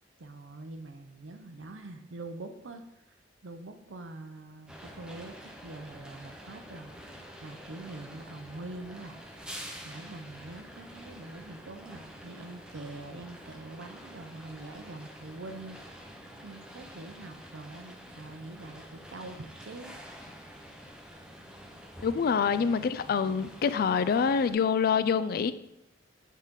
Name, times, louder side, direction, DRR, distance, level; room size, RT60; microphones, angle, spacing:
voice 1, 0.2-2.8 3.1-3.2 3.4-6.9 7.4-9.2 9.8-19.9, right 2 dB, 85° right, 7 dB, 0.7 m, -44 dB
sound 1, 4.7-24.5, equal, 5° right, 0.7 m, -47 dB
voice 2, 22.0-25.5, left 6 dB, 55° left, 14 dB, 0.3 m, -26 dB
8.3 x 4.0 x 3.7 m, 0.87 s
head